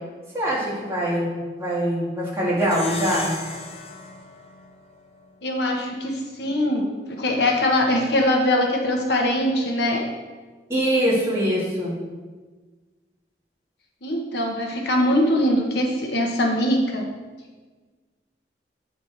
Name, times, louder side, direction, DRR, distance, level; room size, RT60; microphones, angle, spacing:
voice 1, 0.3-1.3 1.6-3.3 10.7-12.0, equal, 15° right, -7 dB, 1.9 m, -23 dB
Plucked string instrument, 2.6-5.4, left 4 dB, 35° left, 0.6 m, -36 dB
voice 2, 5.4-10.0 14.0-17.1, left 1 dB, 75° left, 1 dB, 1.1 m, -22 dB
8.6 x 4.3 x 4.6 m, 1.4 s
head